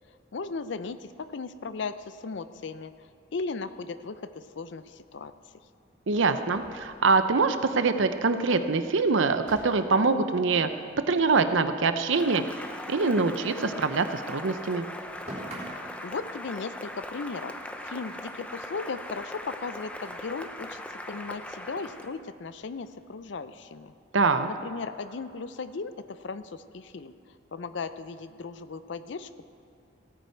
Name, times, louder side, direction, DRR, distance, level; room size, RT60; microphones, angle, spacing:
voice 1, 0.3-2.9 3.3-5.3 16.0-17.5 17.8-23.9 24.5-27.1 27.5-29.4, left 4 dB, 65° left, 13 dB, 0.5 m, -36 dB
voice 2, 6.1-10.7 11.1-12.4 12.9-14.9 24.1-24.5, right 4 dB, 75° right, 10 dB, 0.7 m, -24 dB
sound 1, 6.5-7.9 8.2-8.3 8.6-8.7 9.4-11.9 12.2-14.0 14.3-16.0, right 1 dB, 35° right, 3.1 m, -46 dB
Cheering / Applause, 12.1-22.2, left 1 dB, 5° left, 0.5 m, -40 dB
16.5 x 9.3 x 4.6 m, 2.7 s
head